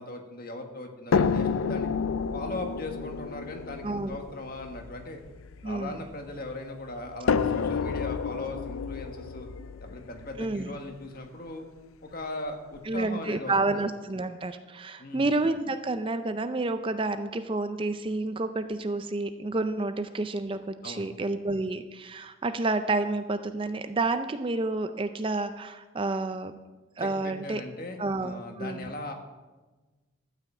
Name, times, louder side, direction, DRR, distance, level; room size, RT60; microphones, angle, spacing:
voice 1, 0.0-1.9 2.3-5.2 5.6-9.5 9.8-11.6 12.0-13.8 15.0-15.3 20.8-21.1 27.0-29.1, left 2 dB, 45° left, 4 dB, 1.5 m, -39 dB
sound 1, 1.1-6.3 7.3-11.2 12.2-12.3 12.7-12.8, left 5 dB, 85° left, 0.4 m, -30 dB
voice 2, 3.8-4.2 5.6-6.1 10.4-10.8 12.9-26.6 27.0-27.6 28.0-28.9, right 2 dB, 25° right, 9 dB, 0.4 m, -30 dB
13.0 x 5.8 x 8.2 m, 1.2 s
head